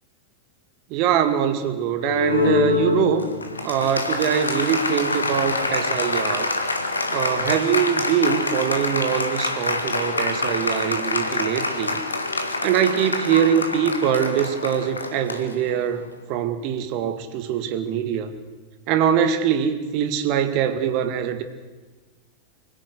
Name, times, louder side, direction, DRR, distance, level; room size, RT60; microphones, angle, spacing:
voice 1, 0.9-3.3 3.6-6.5 7.1-12.0 12.6-18.3 18.9-21.4, right 9 dB, 45° right, 9 dB, 2.2 m, -23 dB
Applause, 2.0-16.1, left 3 dB, 80° left, 2.0 m, -26 dB
25.0 x 16.5 x 8.1 m, 1.3 s
figure-of-eight pair, 90°, 0 cm